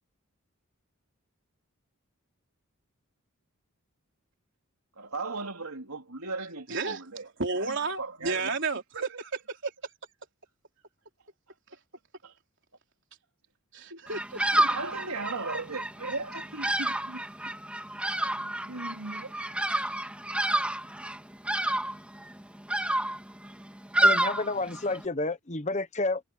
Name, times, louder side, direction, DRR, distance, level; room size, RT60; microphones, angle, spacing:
voice 1, 5.0-7.2 7.6-8.5 8.9-9.1 12.2-12.3 13.9-14.0 14.5-17.2 18.7-19.3, right 3 dB, 85° right, 3.4 m, -37 dB
voice 2, 6.7-7.0 7.4-9.7 13.7-14.4, right 4 dB, 55° right, 3.9 m, -32 dB
Bird vocalization bird call bird song, 14.1-25.0, right 1 dB, 5° right, 3.2 m, -29 dB
voice 3, 24.0-26.2, left 2 dB, 30° left, 1.0 m, -30 dB
head